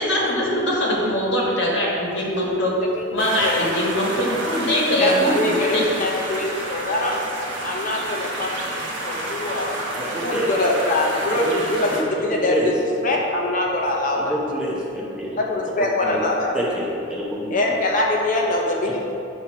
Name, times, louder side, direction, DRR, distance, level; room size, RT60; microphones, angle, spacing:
voice 1, 0.0-2.7 3.1-5.9, equal, 70° left, -4 dB, 1.4 m, -22 dB
sound 1, 3.2-12.0, right 1 dB, 70° right, 1.1 m, -30 dB
voice 2, 5.0-7.2 7.6-8.7 9.0-9.8 10.2-12.7 13.0-14.3 15.4-16.5 17.5-19.0, left 2 dB, 40° left, -1 dB, 0.7 m, -23 dB
voice 3, 9.9-10.5 11.4-12.7 14.1-15.4 15.8-16.2 16.5-17.6 18.9-19.0, equal, 5° right, -6 dB, 0.8 m, -28 dB
7.6 x 3.0 x 5.6 m, 2.7 s
head